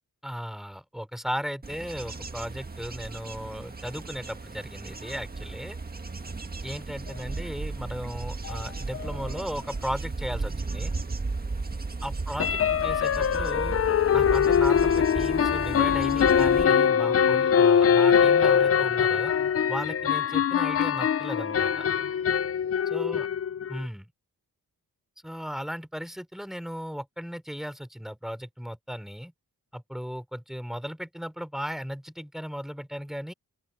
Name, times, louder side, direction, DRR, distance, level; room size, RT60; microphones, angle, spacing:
voice 1, 0.2-5.8 6.6-10.9 12.0-13.8 14.1-19.3 19.7-21.9 22.9-23.3 23.7-24.1 25.2-29.3 29.7-33.3, equal, ahead, 3.5 m, -36 dB
Bird / Insect / Wind, 1.6-16.6, right 3 dB, 25° right, 1.6 m, -35 dB
sound 1, 8.4-8.5 8.9-9.1 9.4-9.5 12.4-23.9, left 8 dB, 40° left, 0.4 m, -23 dB
open air
wide cardioid pair, 150°, 37 cm